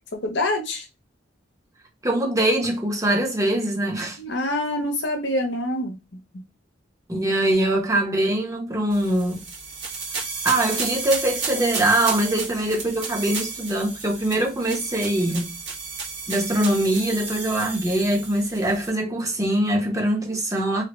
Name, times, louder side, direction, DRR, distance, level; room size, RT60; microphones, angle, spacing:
voice 1, 0.2-0.8 4.2-6.0, left 1 dB, 70° left, 0.8 m, -25 dB
voice 2, 2.0-4.2 7.1-9.4 10.4-15.5 16.3-20.8, right 1 dB, 15° right, 0.8 m, -23 dB
sound 1, 8.9-18.9, right 4 dB, 70° right, 1.5 m, -32 dB
3.2 x 2.2 x 3.0 m
head